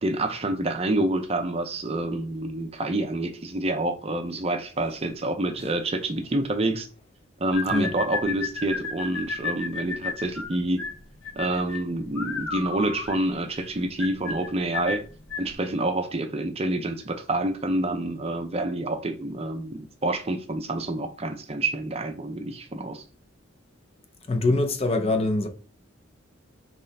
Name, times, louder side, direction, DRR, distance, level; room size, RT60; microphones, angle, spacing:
voice 1, 0.0-6.9 7.4-10.8 11.4-15.1 15.4-23.0, right 1 dB, 30° right, 0.6 m, -27 dB
sound 1, 7.5-15.6, left 4 dB, 80° left, 1.3 m, -33 dB
voice 2, 24.3-25.5, left 2 dB, 30° left, 0.5 m, -23 dB
6.0 x 3.2 x 2.7 m
head